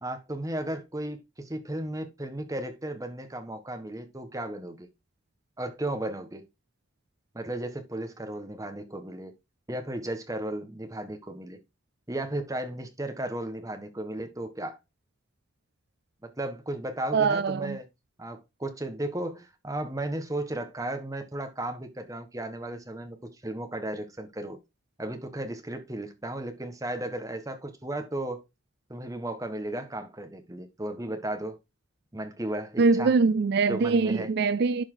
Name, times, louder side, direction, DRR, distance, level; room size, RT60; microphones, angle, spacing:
voice 1, 0.0-4.9 5.6-6.5 7.3-9.4 9.7-11.6 12.1-14.8 16.2-17.9 18.2-24.6 25.0-28.4 28.9-31.6 32.1-33.1 33.7-34.3, right 1 dB, 15° right, 1.4 m, -35 dB
voice 2, 17.1-17.8 32.8-34.8, right 4 dB, 55° right, 0.4 m, -23 dB
11.5 x 4.4 x 3.8 m
head